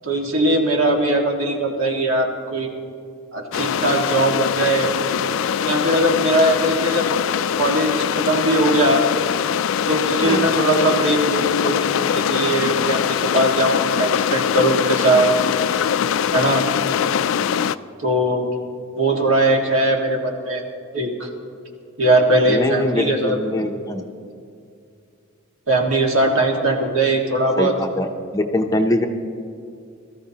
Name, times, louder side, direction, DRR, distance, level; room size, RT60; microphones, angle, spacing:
voice 1, 0.0-2.7 3.3-4.9 5.6-7.1 7.6-9.0 9.9-15.3 16.3-16.7 18.0-18.5 19.0-20.6 20.9-21.3 22.0-23.4 25.7-27.7, right 1 dB, 65° right, 1 dB, 1.8 m, -20 dB
sound 1, 3.5-17.8, left 8 dB, 60° left, 0.3 m, -22 dB
voice 2, 10.2-10.5 22.5-24.0 27.6-28.1 28.3-29.1, left 1 dB, 15° left, 4 dB, 0.6 m, -22 dB
23.0 x 14.0 x 2.9 m, 2.4 s
head